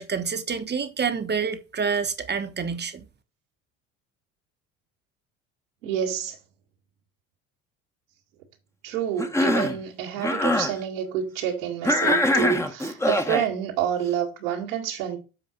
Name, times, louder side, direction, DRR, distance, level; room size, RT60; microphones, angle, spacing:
voice 1, 0.0-3.1, right 6 dB, 25° right, 1.2 m, -28 dB
voice 2, 5.8-6.4 8.8-15.2, right 9 dB, 80° right, 2.2 m, -28 dB
Cough, 9.2-9.8 10.2-10.7 11.8-13.5, left 1 dB, 5° left, 1.2 m, -23 dB
8.0 x 4.7 x 4.6 m
hypercardioid pair, 65°, 39 cm